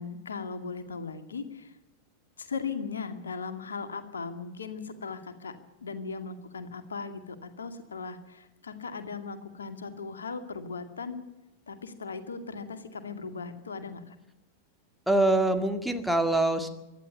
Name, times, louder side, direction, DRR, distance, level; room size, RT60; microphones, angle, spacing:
voice 1, 0.0-1.7 2.4-5.6 5.8-11.2 11.7-14.2, left 5 dB, 70° left, 8 dB, 2.2 m, -38 dB
voice 2, 15.1-16.7, right 2 dB, ahead, 5 dB, 2.0 m, -24 dB
24.5 x 11.5 x 9.6 m, 1.0 s
figure-of-eight pair, 90°, 0 cm